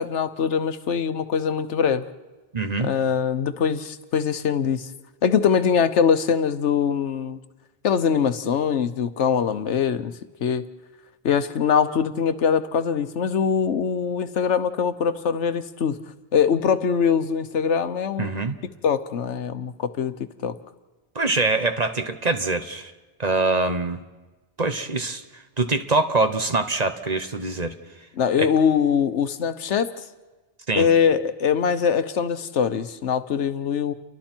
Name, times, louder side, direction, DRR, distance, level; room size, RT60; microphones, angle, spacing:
voice 1, 0.0-2.0 2.8-4.9 5.2-7.4 7.8-10.1 10.4-10.6 11.2-16.0 16.3-18.5 18.8-20.1 20.4-20.5 28.2-29.9 30.8-33.9, left 7 dB, 85° left, 11 dB, 1.2 m, -22 dB
voice 2, 2.5-2.9 18.2-18.6 21.1-22.9 23.2-24.0 24.6-27.8 28.4-28.5 30.7-30.9, right 3 dB, 40° right, 8 dB, 1.2 m, -24 dB
30.0 x 23.0 x 4.5 m, 1.2 s
omnidirectional pair, 1.1 m